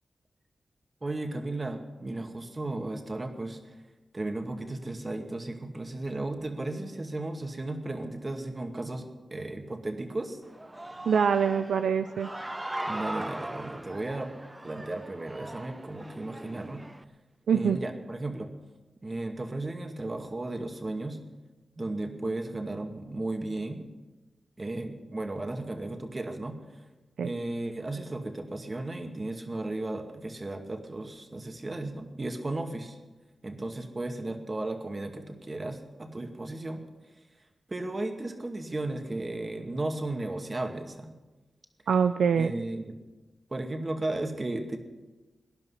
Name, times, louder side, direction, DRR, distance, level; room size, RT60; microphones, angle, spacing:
voice 1, 1.0-3.6 4.1-10.4 12.9-14.3 14.6-16.9 17.5-18.5 19.0-21.2 21.8-23.8 24.6-26.6 27.2-33.0 33.4-36.8 37.7-41.1 42.4-43.0 43.5-44.8, right 2 dB, 40° right, 5 dB, 2.2 m, -35 dB
Human voice / Cheering, 10.4-17.0, right 1 dB, 20° right, 0.7 m, -40 dB
voice 2, 11.1-12.3 17.5-17.8 27.2-27.3 41.9-42.5, right 6 dB, 85° right, 10 dB, 0.4 m, -24 dB
19.0 x 10.5 x 5.7 m, 1.2 s
cardioid pair, 40°, 0 cm